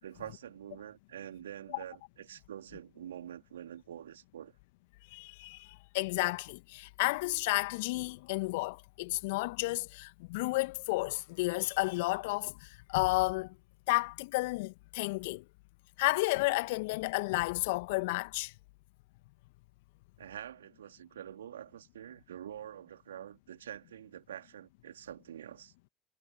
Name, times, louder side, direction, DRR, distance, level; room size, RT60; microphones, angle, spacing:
voice 1, 0.0-4.5 20.2-25.9, right 10 dB, 80° right, 3.0 m, -46 dB
voice 2, 5.1-13.6 13.9-15.4 16.0-18.5, left 23 dB, 70° left, 1.8 m, -32 dB
figure-of-eight pair, 60°, 0 cm